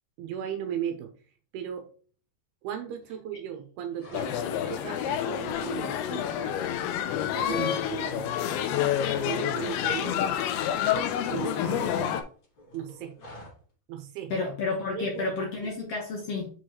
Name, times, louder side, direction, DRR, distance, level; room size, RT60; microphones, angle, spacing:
voice 1, 0.2-1.1 1.5-1.9 2.6-6.5 7.3-8.3 9.2-10.2 11.2-12.1 12.7-13.1 13.9-14.5 14.9-15.2 15.6-15.7, right 9 dB, 85° right, 5 dB, 2.8 m, -36 dB
sound 1, 3.9-4.8 5.1-5.9 6.2-6.4 6.7-9.5 9.7-10.8 11.1-13.6, equal, 40° left, 2.4 m, -47 dB
sound 2, 4.1-12.2, left 10 dB, 85° left, 2.6 m, -28 dB
voice 2, 14.3-16.5, left 3 dB, 70° left, 0 dB, 1.5 m, -31 dB
7.0 x 4.7 x 3.0 m, 0.40 s
omnidirectional pair, 4.5 m